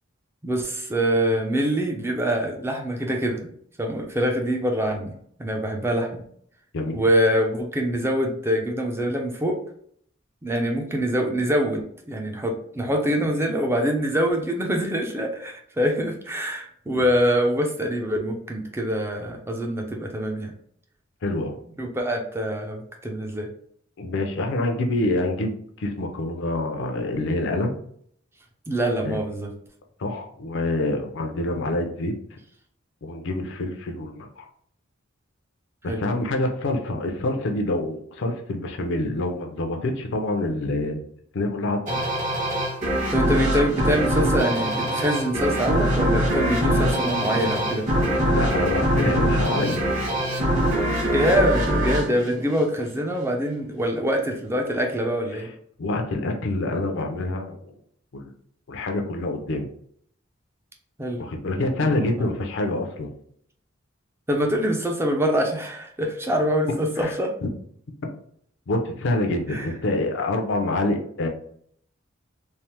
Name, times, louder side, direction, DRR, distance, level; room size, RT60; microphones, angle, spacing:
voice 1, 0.4-3.4 3.8-5.1 5.4-6.2 6.9-9.6 10.4-11.8 12.1-20.5 21.8-23.5 28.7-29.5 31.5-31.7 35.8-36.0 43.1-47.9 51.1-55.5 61.0-61.2 61.8-62.3 64.3-67.3 69.5-69.7, equal, 10° right, 2 dB, 0.4 m, -24 dB
voice 2, 21.2-21.6 24.0-27.8 29.0-29.2 30.0-32.1 33.0-34.4 35.8-41.0 41.3-42.0 48.3-49.9 55.8-57.7 58.1-58.3 58.7-59.7 61.2-63.1 67.0-67.1 68.7-71.3, left 2 dB, 65° left, 4 dB, 0.5 m, -26 dB
sound 1, 41.9-53.1, equal, 40° right, 1.1 m, -23 dB
3.2 x 2.0 x 2.8 m, 0.63 s
head